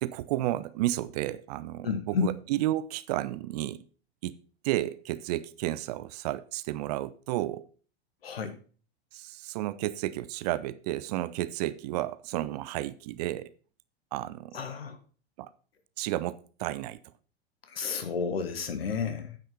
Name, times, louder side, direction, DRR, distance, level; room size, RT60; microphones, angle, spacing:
voice 1, 0.0-3.9 4.2-4.4 4.6-7.7 9.1-13.5 14.1-14.6 15.4-15.5 16.0-17.0, right 15 dB, 40° right, 0.5 m, -32 dB
voice 2, 1.8-2.3 8.2-8.6 14.5-15.0 17.7-19.4, left 6 dB, 65° left, 1.6 m, -31 dB
9.2 x 5.5 x 5.6 m
figure-of-eight pair, 90°, 32 cm